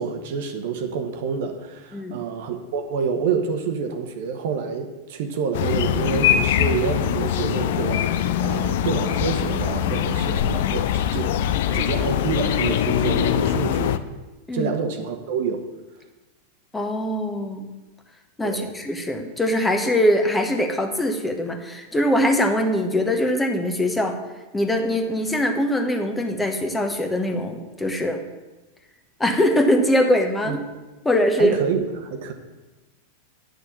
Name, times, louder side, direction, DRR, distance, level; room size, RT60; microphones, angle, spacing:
voice 1, 0.0-11.3 11.7-14.0 14.5-15.6 18.4-18.7 30.5-30.6 31.4-32.3, right 6 dB, 55° right, 6 dB, 1.2 m, -27 dB
sound 1, 5.5-14.0, left 10 dB, 55° left, 0.5 m, -22 dB
voice 2, 16.7-17.7 18.4-24.2 24.5-28.2 29.2-30.6 31.0-31.6, left 1 dB, 10° left, 4 dB, 1.2 m, -22 dB
9.6 x 6.5 x 7.0 m, 1.1 s
figure-of-eight pair, 90°, 0 cm